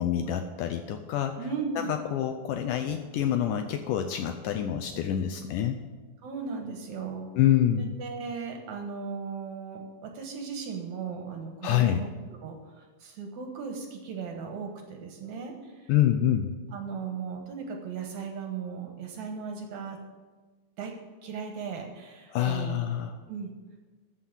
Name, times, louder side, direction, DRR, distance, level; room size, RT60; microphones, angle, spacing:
voice 1, 0.0-1.3 1.8-5.8 7.4-7.9 11.6-12.0 15.9-16.5 22.3-23.1, left 11 dB, 85° left, 7 dB, 1.9 m, -26 dB
voice 2, 1.4-1.9 6.2-7.3 7.8-12.1 12.4-15.9 16.7-20.0 20.8-20.9 21.2-23.0 23.3-23.5, right 5 dB, 60° right, 2 dB, 2.2 m, -37 dB
14.0 x 5.7 x 7.2 m, 1.3 s
omnidirectional pair, 4.3 m